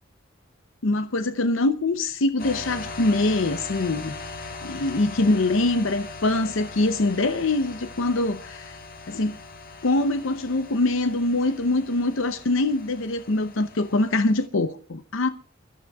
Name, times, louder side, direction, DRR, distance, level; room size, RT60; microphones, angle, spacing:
voice 1, 0.8-4.1 4.6-8.8 9.1-9.4 9.8-15.3, left 2 dB, 80° left, 0.7 m, -23 dB
sound 1, 2.4-14.5, left 3 dB, 45° left, 1.6 m, -40 dB
28.5 x 12.5 x 2.4 m
head